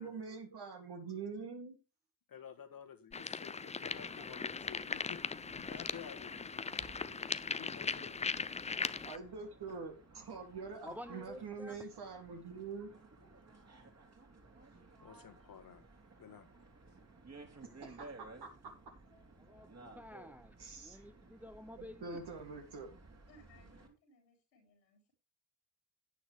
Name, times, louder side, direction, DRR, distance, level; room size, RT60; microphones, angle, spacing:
voice 1, 0.0-1.8 9.0-12.9 17.6-18.7 20.6-21.1 21.8-22.9, right 4 dB, 50° right, 2.0 m, -45 dB
voice 2, 2.3-6.5 7.5-8.3 13.5-13.7 15.0-15.8 16.2-16.7, left 8 dB, 45° left, 1.7 m, -52 dB
sound 1, 3.1-9.2, left 5 dB, 15° left, 0.5 m, -39 dB
sound 2, 3.9-23.9, right 3 dB, 30° right, 3.2 m, -57 dB
voice 3, 7.5-10.2 11.2-11.7 23.3-25.1, left 2 dB, 85° left, 3.8 m, -65 dB
voice 4, 10.8-11.8 19.4-22.2, equal, 5° right, 1.1 m, -50 dB
10.0 x 9.2 x 3.4 m
figure-of-eight pair, 45°, 50 cm